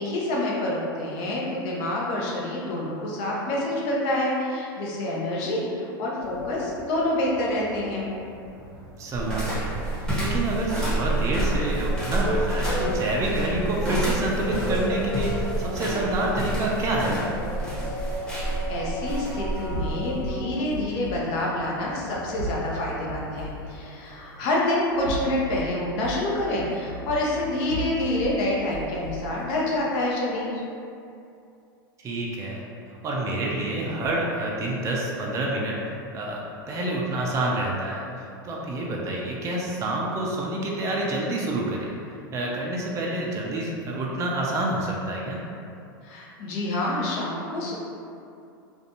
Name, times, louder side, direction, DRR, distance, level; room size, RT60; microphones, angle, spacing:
voice 1, 0.0-8.1 18.2-30.6 46.0-47.7, left 1 dB, 50° left, -4 dB, 0.7 m, -27 dB
sound 1, 6.2-24.6, left 1 dB, 90° left, 1.2 m, -36 dB
voice 2, 9.0-17.2 32.0-32.6 33.0-35.8 36.1-41.9 42.3-45.4, right 2 dB, 25° right, -3 dB, 0.4 m, -28 dB
sound 2, 9.1-20.4, right 1 dB, 5° left, 1.0 m, -29 dB
sound 3, 19.7-21.2 22.4-23.7 24.9-25.7 26.0-28.4 28.7-29.4, equal, 80° right, 0.7 m, -35 dB
2.5 x 2.2 x 2.8 m, 2.5 s
hypercardioid pair, 110°, 12 cm